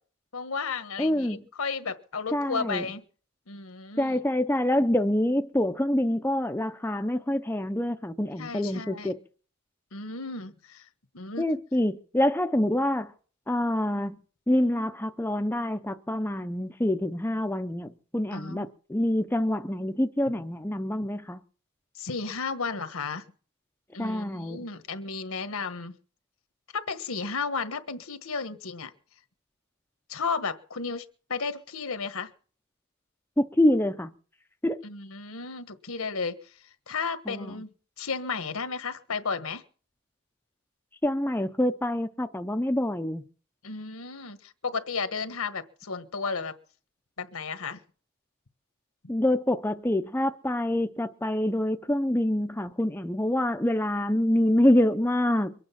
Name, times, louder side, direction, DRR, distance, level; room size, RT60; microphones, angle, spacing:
voice 1, 0.3-3.0 3.5-4.2 8.4-9.1 9.9-10.9 11.1-11.5 18.3-18.7 21.9-23.2 23.9-26.0 26.7-28.9 30.1-32.3 34.8-36.6 36.9-37.7 38.0-39.6 43.6-46.5 47.2-47.8, left 4 dB, 75° left, 1.4 m, -33 dB
voice 2, 1.0-1.4 2.3-2.8 4.0-9.2 11.4-13.1 13.5-14.2 14.5-21.4 24.0-24.6 33.4-34.1 34.6-34.8 37.3-37.5 41.0-43.2 49.1-55.5, left 1 dB, 10° left, 0.6 m, -26 dB
23.5 x 8.9 x 5.8 m
head